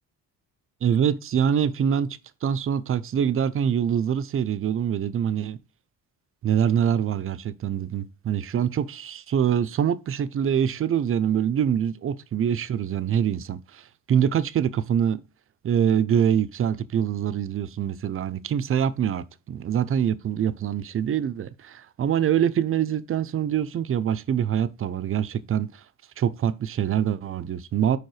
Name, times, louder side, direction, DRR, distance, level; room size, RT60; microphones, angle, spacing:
voice 1, 0.8-5.6 6.4-13.8 14.1-15.2 15.6-25.7 26.2-28.0, right 9 dB, 45° right, 0.6 m, -24 dB
4.9 x 4.7 x 4.8 m
cardioid pair, 90°, 31 cm